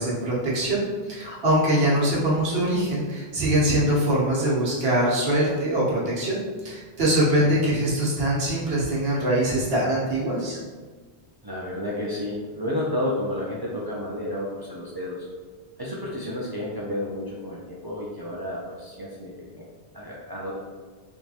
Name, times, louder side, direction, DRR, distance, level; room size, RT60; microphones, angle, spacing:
voice 1, 0.0-10.6, right 1 dB, 70° right, -6 dB, 1.2 m, -23 dB
voice 2, 7.2-7.7 11.4-15.3 15.8-19.6 19.9-20.6, left 1 dB, 35° right, -6 dB, 0.4 m, -31 dB
3.4 x 3.0 x 2.7 m, 1.4 s
omnidirectional pair, 1.1 m